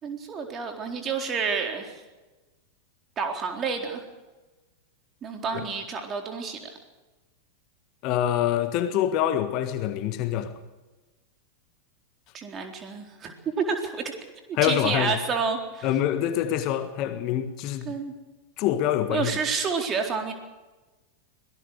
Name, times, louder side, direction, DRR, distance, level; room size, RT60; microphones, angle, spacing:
voice 1, 0.0-2.0 3.2-4.0 5.2-6.7 12.3-14.1 14.5-15.9 17.9-18.1 19.1-20.3, right 5 dB, 25° right, 4.1 m, -29 dB
voice 2, 8.0-10.5 14.6-15.1 15.8-17.9 18.6-19.3, left 11 dB, 40° left, 1.5 m, -25 dB
25.0 x 18.5 x 6.6 m
figure-of-eight pair, 90°, 0 cm